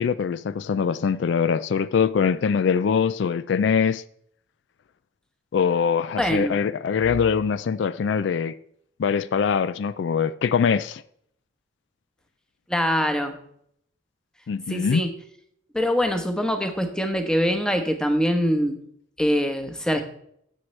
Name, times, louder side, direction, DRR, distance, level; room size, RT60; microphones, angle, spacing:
voice 1, 0.0-4.0 5.5-8.6 9.0-11.0 14.5-15.0, left 6 dB, 65° left, 0.3 m, -23 dB
voice 2, 6.2-6.6 12.7-13.4 14.7-15.1 15.7-18.8 19.2-20.0, equal, 5° left, 1.0 m, -23 dB
13.0 x 7.8 x 3.2 m
head